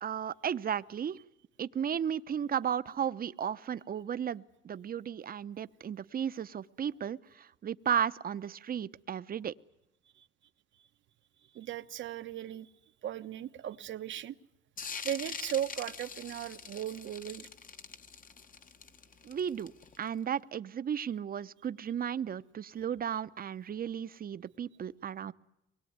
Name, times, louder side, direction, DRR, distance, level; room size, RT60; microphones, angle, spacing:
voice 1, 0.0-1.2 1.6-9.5 19.2-19.7 20.0-25.3, right 8 dB, 45° right, 15 dB, 0.9 m, -34 dB
voice 2, 11.5-12.7 13.0-14.4 15.0-17.5, right 11 dB, 70° right, 11 dB, 1.1 m, -37 dB
sound 1, 14.8-20.1, left 5 dB, 45° left, 1.5 m, -43 dB
23.5 x 21.0 x 9.5 m, 0.89 s
cardioid pair, 90°, 20 cm